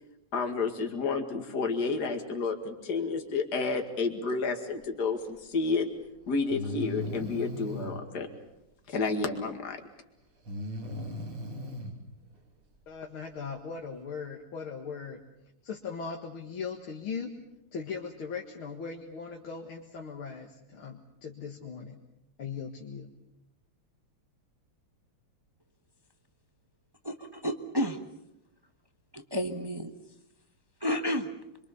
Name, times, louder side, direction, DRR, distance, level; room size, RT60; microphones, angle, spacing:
voice 1, 0.3-5.9 6.3-8.3 8.9-9.8, left 4 dB, 50° left, 5 dB, 2.6 m, -30 dB
Breathing, 5.6-5.7 6.5-8.0 10.5-11.9, left 1 dB, 85° right, 4.2 m, -37 dB
voice 2, 12.9-15.2 15.6-17.3 17.7-22.0 22.4-23.1, left 5 dB, 70° left, 1 dB, 2.6 m, -39 dB
voice 3, 27.0-28.0 29.1-29.9 30.8-31.3, equal, 15° right, 6 dB, 1.0 m, -31 dB
25.5 x 24.0 x 6.9 m, 0.86 s
omnidirectional pair, 2.4 m